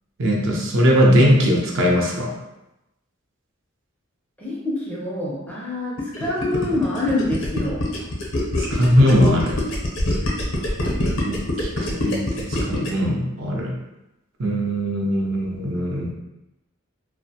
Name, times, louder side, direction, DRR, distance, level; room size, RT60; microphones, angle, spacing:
voice 1, 0.2-2.3 8.6-9.6 11.2-13.7 14.4-16.1, equal, 60° right, -1 dB, 0.5 m, -20 dB
voice 2, 4.4-7.8, left 2 dB, 5° left, -6 dB, 0.4 m, -26 dB
Gurgling, 6.0-13.1, left 1 dB, 70° left, 0.6 m, -24 dB
2.4 x 2.0 x 2.7 m, 0.93 s
head